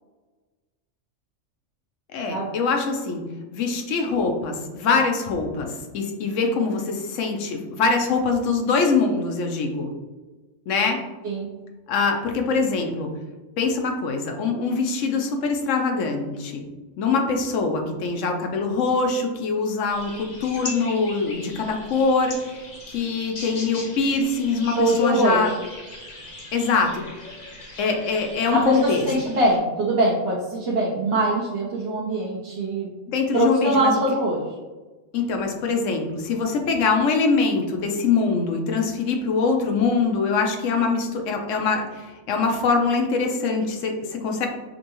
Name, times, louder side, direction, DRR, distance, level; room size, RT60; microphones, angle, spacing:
voice 1, 2.1-3.2 3.5-9.9 10.7-11.0 11.9-13.1 13.6-16.6 17.0-25.5 26.5-27.0 27.8-29.1 33.1-34.0 35.1-44.5, left 4 dB, 85° left, 3 dB, 1.0 m, -23 dB
sound 1, 19.9-29.6, left 2 dB, 40° left, 0.7 m, -40 dB
voice 2, 24.6-25.4 28.5-32.9 33.3-34.4, right 1 dB, 60° right, -5 dB, 0.9 m, -22 dB
5.1 x 2.3 x 3.0 m, 1.2 s
omnidirectional pair, 1.3 m